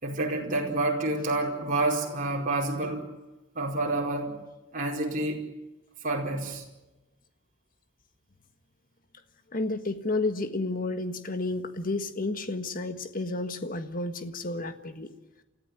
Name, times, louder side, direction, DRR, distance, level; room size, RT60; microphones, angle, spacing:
voice 1, 0.0-3.1 3.5-4.3 4.7-5.4 6.0-6.6, right 2 dB, 40° right, 4.9 m, -28 dB
voice 2, 9.5-15.1, left 2 dB, 45° left, 1.6 m, -31 dB
29.5 x 14.5 x 9.2 m
head